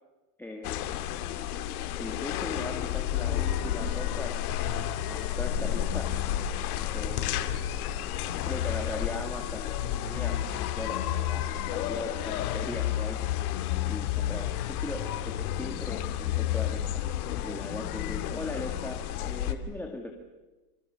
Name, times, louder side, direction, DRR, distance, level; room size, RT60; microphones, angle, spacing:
voice 1, 0.4-1.0 2.0-6.2 6.9-7.7 8.4-10.4 10.8-13.2 13.8-17.0 17.4-20.1, left 2 dB, 5° left, 1 dB, 2.2 m, -39 dB
sound 1, 0.6-19.5, left 11 dB, 65° left, 2.6 m, -31 dB
27.0 x 27.0 x 7.0 m, 1.1 s
supercardioid pair, 140°, 47 cm